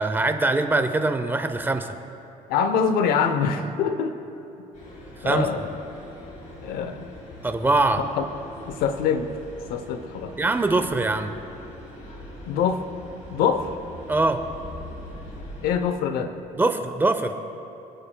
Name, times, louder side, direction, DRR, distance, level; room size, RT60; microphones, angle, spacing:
voice 1, 0.0-2.0 5.2-5.5 7.4-8.0 10.4-11.3 14.1-14.4 16.5-17.3, right 2 dB, 15° right, 8 dB, 0.7 m, -22 dB
voice 2, 2.5-4.2 5.2-5.7 6.6-7.1 8.0-8.2 8.7-9.3 9.7-10.3 12.5-12.8 13.3-13.8 15.6-16.3, left 6 dB, 85° left, 9 dB, 0.8 m, -24 dB
sound 1, 4.7-15.7, left 1 dB, 55° left, 3.1 m, -42 dB
26.0 x 9.0 x 2.3 m, 2.8 s
cardioid pair, 105°, 15 cm